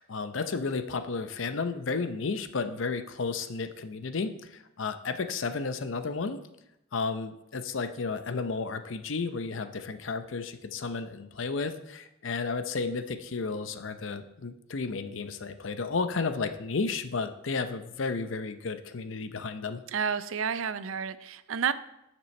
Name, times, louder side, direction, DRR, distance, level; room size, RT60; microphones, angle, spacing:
voice 1, 0.0-6.4 6.9-19.8, left 4 dB, 75° left, 10 dB, 0.6 m, -32 dB
voice 2, 19.9-21.7, right 7 dB, 90° right, 14 dB, 0.5 m, -30 dB
9.4 x 6.1 x 4.3 m, 0.86 s
head